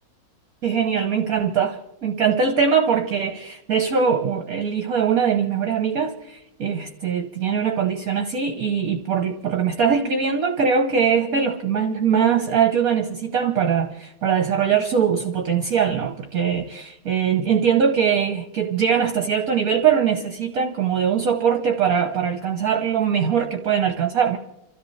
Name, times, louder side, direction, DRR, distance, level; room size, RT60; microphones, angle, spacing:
voice 1, 0.6-24.4, right 7 dB, 50° right, 1.3 m, -22 dB
28.5 x 13.5 x 3.3 m
omnidirectional pair, 2.2 m